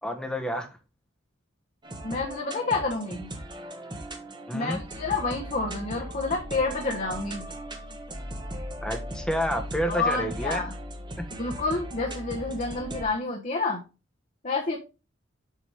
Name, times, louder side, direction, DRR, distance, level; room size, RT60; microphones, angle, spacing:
voice 1, 0.0-0.7 4.5-4.8 8.8-10.7, equal, 5° left, 1.2 m, -29 dB
sound 1, 1.8-13.0, equal, 20° right, 1.3 m, -38 dB
voice 2, 2.0-3.3 4.5-7.5 9.9-10.7 11.4-13.8 14.4-14.8, left 3 dB, 40° left, 1.3 m, -29 dB
7.6 x 6.0 x 3.5 m
head